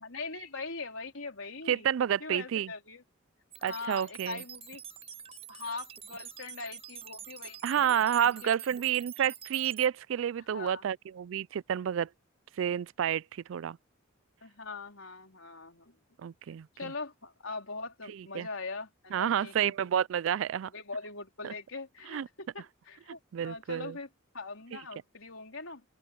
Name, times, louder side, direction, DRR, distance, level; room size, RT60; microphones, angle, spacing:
voice 1, 0.0-1.9 2.2-3.0 3.6-4.8 5.5-8.5 8.9-9.0 10.5-10.9 14.4-16.0 16.7-19.8 20.7-24.1 24.3-25.8, left 3 dB, 70° left, 3.9 m, -42 dB
voice 2, 1.7-2.7 3.6-4.4 7.6-12.1 12.6-13.2 13.5-13.8 16.2-16.7 18.3-18.5 19.1-20.7 21.4-21.5 22.1-22.3 23.3-24.0, right 9 dB, 70° right, 0.3 m, -29 dB
sound 1, 3.5-9.9, right 8 dB, 30° right, 5.5 m, -47 dB
open air
head